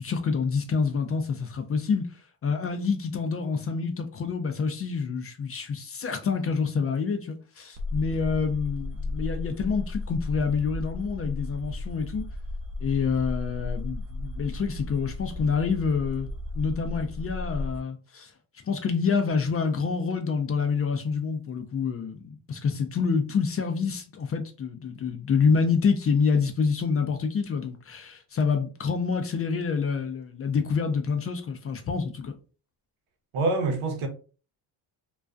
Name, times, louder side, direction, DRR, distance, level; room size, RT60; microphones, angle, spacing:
voice 1, 0.0-12.3 12.8-16.3 16.5-18.3 18.7-32.4, left 5 dB, 30° left, 0.4 m, -27 dB
sound 1, 7.8-17.8, left 2 dB, 45° right, 0.4 m, -34 dB
voice 2, 33.3-34.1, right 3 dB, 85° right, 0.8 m, -25 dB
2.3 x 2.2 x 2.4 m
supercardioid pair, 75°, 47 cm